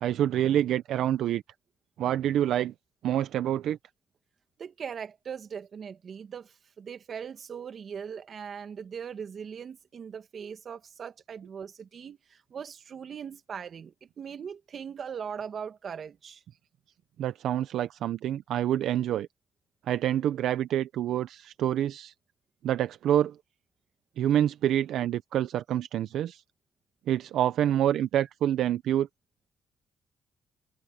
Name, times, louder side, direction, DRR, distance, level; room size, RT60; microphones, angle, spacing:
voice 1, 0.0-1.4 2.0-2.7 3.0-3.8 17.2-19.3 19.9-22.1 22.6-23.3 24.2-26.4 27.1-29.1, right 11 dB, 75° right, 0.7 m, -27 dB
voice 2, 4.6-16.4, right 7 dB, 50° right, 2.2 m, -40 dB
cardioid pair, 90°, 0 cm